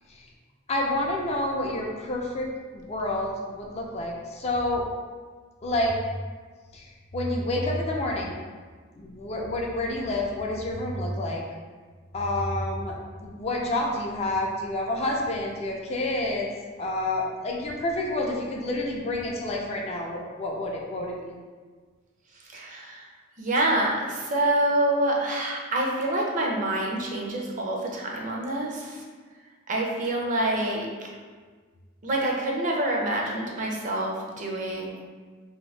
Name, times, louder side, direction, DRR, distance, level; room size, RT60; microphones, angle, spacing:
voice 1, 0.7-4.9 5.6-6.0 6.7-8.3 8.9-11.4 12.1-13.0 13.2-16.5 16.8-21.3, left 1 dB, 30° left, -1 dB, 0.3 m, -29 dB
voice 2, 22.4-23.1 23.4-29.0 29.7-31.1 32.0-35.0, right 1 dB, 40° right, -1 dB, 0.4 m, -27 dB
2.7 x 2.6 x 3.1 m, 1.5 s
head